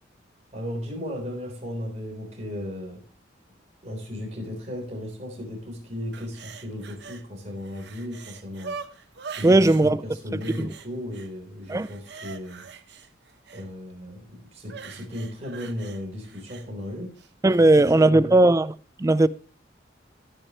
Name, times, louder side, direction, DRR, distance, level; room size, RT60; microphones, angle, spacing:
voice 1, 0.5-3.0 3.8-8.8 9.4-12.6 13.5-17.1 17.9-18.4, left 1 dB, 35° right, 3.7 m, -35 dB
sound 1, 6.1-7.2 7.6-9.8 10.4-11.3 11.6-13.7 14.6-16.7 17.2-17.3, right 5 dB, 65° right, 0.9 m, -42 dB
voice 2, 9.4-10.0 10.3-10.7 11.7-11.9 17.4-18.7 19.0-19.3, right 2 dB, 15° right, 0.4 m, -18 dB
17.5 x 6.5 x 3.0 m
head